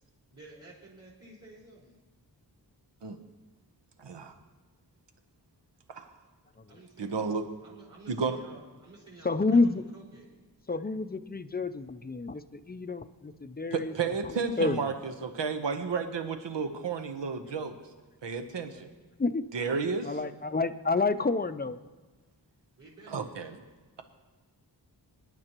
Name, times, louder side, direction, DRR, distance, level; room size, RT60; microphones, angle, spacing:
voice 1, 0.3-2.0 6.7-7.3 7.6-10.3 22.8-23.3, right 2 dB, 45° right, -4 dB, 4.4 m, -52 dB
voice 2, 4.0-4.3 5.9-6.1 7.0-7.4 8.1-8.4 13.7-17.8 18.2-18.9 19.5-20.2 23.1-23.6, right 5 dB, 85° right, 7 dB, 1.0 m, -32 dB
voice 3, 9.2-9.8 10.7-13.9 14.6-14.8 19.2-19.5 20.0-21.8, left 3 dB, 25° left, 11 dB, 0.5 m, -28 dB
25.0 x 10.5 x 3.0 m, 1.3 s
wide cardioid pair, 90°, 42 cm